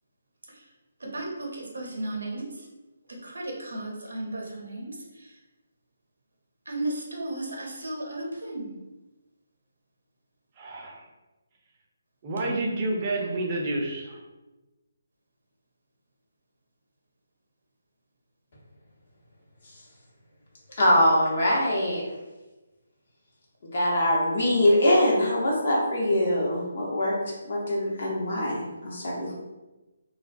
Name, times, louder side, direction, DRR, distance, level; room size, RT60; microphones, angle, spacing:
voice 1, 1.0-2.7 3.1-5.4 6.7-8.7, right 2 dB, 70° right, -1 dB, 0.7 m, -35 dB
voice 2, 10.6-11.0 12.2-14.2, right 2 dB, 35° right, -1 dB, 0.5 m, -29 dB
voice 3, 20.8-22.0 23.7-27.1 27.4-29.3, left 1 dB, 50° left, -5 dB, 0.8 m, -23 dB
2.2 x 2.2 x 2.5 m, 1.1 s
figure-of-eight pair, 145°, 0 cm